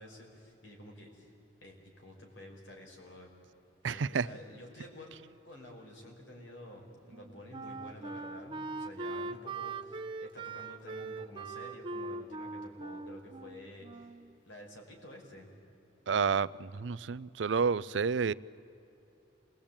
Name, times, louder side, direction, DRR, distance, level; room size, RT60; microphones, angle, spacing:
voice 1, 0.0-1.3 1.6-3.3 3.8-5.1 5.4-14.1 14.4-15.5, left 1 dB, 85° left, 1 dB, 5.2 m, -50 dB
voice 2, 3.8-4.3 16.1-18.3, right 5 dB, 75° right, 19 dB, 0.5 m, -30 dB
Wind instrument woodwind instrument, 7.1-14.3, right 3 dB, 25° right, 0.8 m, -41 dB
27.5 x 21.0 x 8.8 m, 2.9 s
head